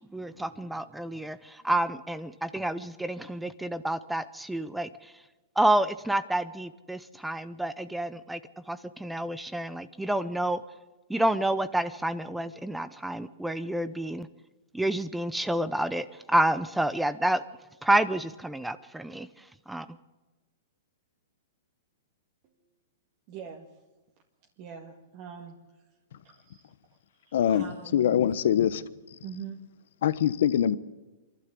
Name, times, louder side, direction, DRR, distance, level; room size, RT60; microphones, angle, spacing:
voice 1, 0.1-5.1 5.6-8.4 8.7-10.6 11.1-14.3 14.7-17.4 17.8-19.3 19.7-20.0, right 1 dB, 5° right, 0.6 m, -29 dB
voice 2, 23.3-23.7 24.6-25.6 26.2-26.7 27.2-28.2 29.2-29.6, right 7 dB, 40° right, 2.0 m, -43 dB
voice 3, 27.3-27.6 27.9-29.2 30.0-30.8, left 10 dB, 65° left, 1.1 m, -24 dB
26.0 x 12.0 x 8.4 m
hypercardioid pair, 155°, 0 cm